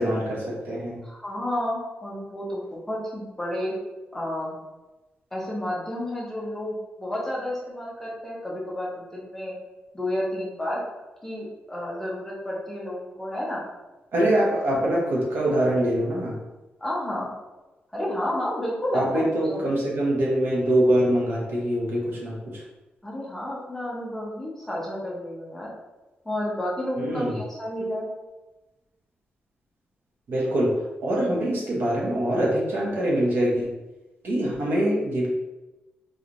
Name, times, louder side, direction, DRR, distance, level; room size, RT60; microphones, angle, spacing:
voice 1, 0.0-1.0 14.1-16.3 18.9-22.6 27.0-27.4 30.3-30.7 31.0-33.7 34.2-35.3, right 1 dB, 70° right, -3 dB, 1.0 m, -24 dB
voice 2, 1.0-3.8 4.1-4.6 5.3-9.5 9.9-10.8 11.2-13.7 16.8-17.3 17.9-19.6 23.0-25.7 26.2-28.1, left 1 dB, 10° left, -5 dB, 0.8 m, -31 dB
4.0 x 3.0 x 2.6 m, 1.1 s
wide cardioid pair, 175°, 4 cm